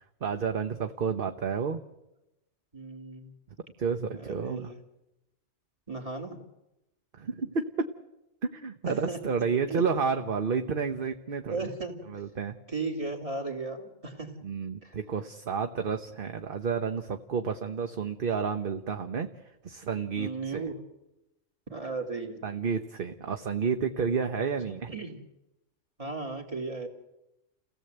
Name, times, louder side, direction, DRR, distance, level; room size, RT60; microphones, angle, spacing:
voice 1, 0.0-1.8 3.8-4.7 7.1-7.7 8.4-11.6 12.1-12.6 14.4-19.3 19.6-20.7 22.4-25.0, right 6 dB, 50° right, 6 dB, 1.1 m, -30 dB
voice 2, 2.7-3.3 4.1-4.7 5.9-6.4 8.9-9.2 9.7-9.8 11.5-12.0 12.7-14.3 14.8-15.0 20.1-20.7 21.7-22.4 24.9-25.2 26.0-26.9, right 3 dB, 30° right, 2 dB, 2.8 m, -35 dB
29.0 x 17.0 x 8.0 m, 0.97 s
omnidirectional pair, 1.3 m